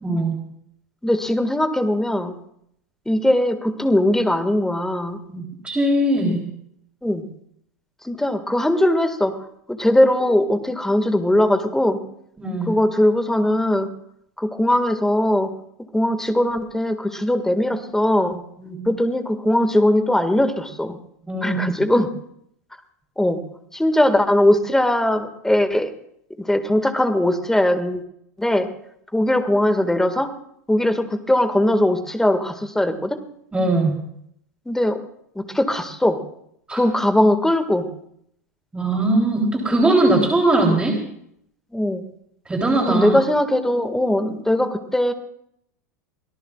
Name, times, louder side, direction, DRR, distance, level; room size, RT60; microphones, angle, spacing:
voice 1, 0.0-0.4 5.3-6.4 12.4-12.8 18.6-18.9 21.3-21.6 33.5-34.0 36.7-36.8 38.7-41.0 42.5-43.2, right 2 dB, 10° right, 0 dB, 3.5 m, -20 dB
voice 2, 1.0-2.4 3.1-5.2 7.0-7.3 8.0-9.4 9.7-12.0 12.7-13.9 14.4-15.5 15.9-18.4 18.9-21.0 21.4-22.1 23.2-25.9 26.4-28.0 28.4-28.7 29.1-30.3 30.7-33.2 34.7-35.0 35.4-36.2 36.7-37.9 41.7-42.0 42.8-45.1, left 1 dB, 5° left, 8 dB, 1.9 m, -20 dB
25.5 x 18.0 x 2.4 m, 0.69 s
hypercardioid pair, 90°, 9 cm